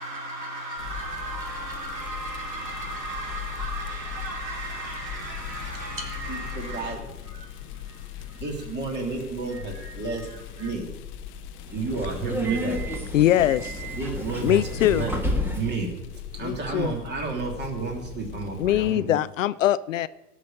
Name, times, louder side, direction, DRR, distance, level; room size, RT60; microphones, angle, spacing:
voice 1, 0.0-8.6 9.4-10.7, right 2 dB, 85° right, 4.0 m, -36 dB
sound 1, 0.8-18.9, left 10 dB, 25° left, 0.9 m, -40 dB
voice 2, 6.3-7.0 8.3-10.3 10.6-10.9 11.7-12.8 14.0-15.1 15.5-15.9 16.3-19.2, right 4 dB, 20° right, 3.0 m, -31 dB
Subway metro underground, 11.6-15.8, equal, 5° right, 1.5 m, -30 dB
voice 3, 13.1-13.9 14.4-15.1 16.4-16.9 18.6-20.1, left 13 dB, 55° left, 0.5 m, -22 dB
18.0 x 6.2 x 6.5 m
figure-of-eight pair, 110°, 49 cm